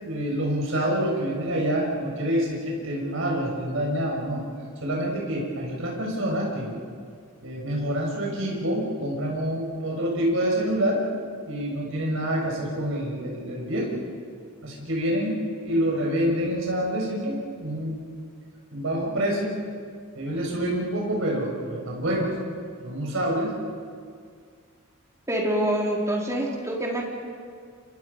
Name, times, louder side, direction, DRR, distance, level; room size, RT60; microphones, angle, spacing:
voice 1, 0.0-4.4 4.8-6.8 7.4-11.0 11.5-14.0 14.6-18.0 18.7-19.6 20.2-22.3 22.8-23.5, equal, 65° right, -2 dB, 6.8 m, -27 dB
voice 2, 25.3-27.0, right 1 dB, 15° right, -2 dB, 3.9 m, -26 dB
29.0 x 28.0 x 5.6 m, 2.1 s
head